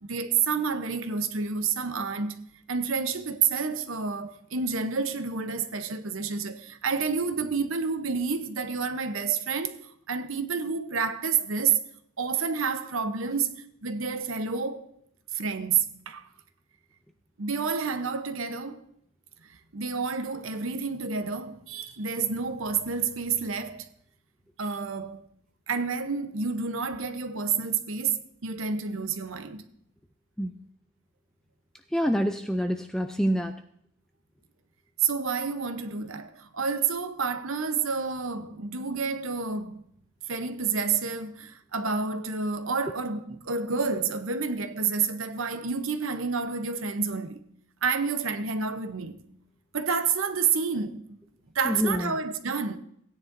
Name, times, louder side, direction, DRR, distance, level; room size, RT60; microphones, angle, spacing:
voice 1, 0.0-9.8 10.1-11.8 12.2-13.5 13.8-14.9 15.3-16.2 17.4-18.8 19.7-23.9 24.6-25.2 25.7-29.6 35.0-39.8 40.3-47.4 47.8-49.3 49.7-51.2 51.5-52.8, right 5 dB, 75° right, 0.9 m, -29 dB
voice 2, 31.9-33.6 51.7-52.2, equal, 5° left, 0.3 m, -26 dB
16.5 x 9.8 x 2.6 m
head